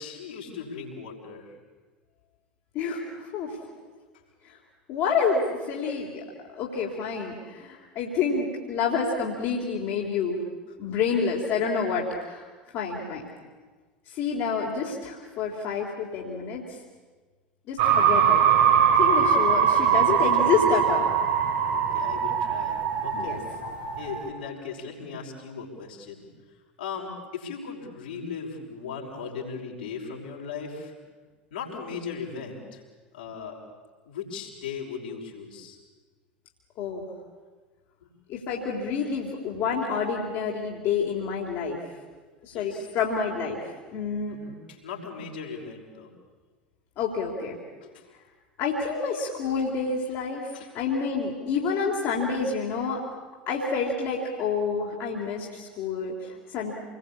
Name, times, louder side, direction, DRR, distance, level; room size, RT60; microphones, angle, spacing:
voice 1, 0.0-1.6 10.7-10.8 19.8-20.7 21.7-23.4 24.0-26.3 26.8-30.9 31.5-32.8 33.1-33.6 34.1-35.8 38.0-38.1 42.5-42.9 44.3-46.1 47.8-48.1 50.5-50.7 51.4-51.5, left 5 dB, 70° left, -2 dB, 5.6 m, -38 dB
voice 2, 2.7-3.6 4.4-4.6 4.9-6.2 6.5-10.4 10.8-12.5 12.7-13.2 14.1-16.6 17.7-18.4 18.9-21.1 23.1-23.4 36.8-37.0 38.3-41.8 42.4-43.6 43.9-44.4 47.0-47.6 48.6-53.0 53.5-56.7, left 5 dB, 45° left, -2 dB, 3.8 m, -28 dB
sound 1, 17.8-24.3, right 8 dB, 60° right, 3.6 m, -22 dB
28.0 x 21.0 x 8.6 m, 1.4 s
figure-of-eight pair, 75°, 5 cm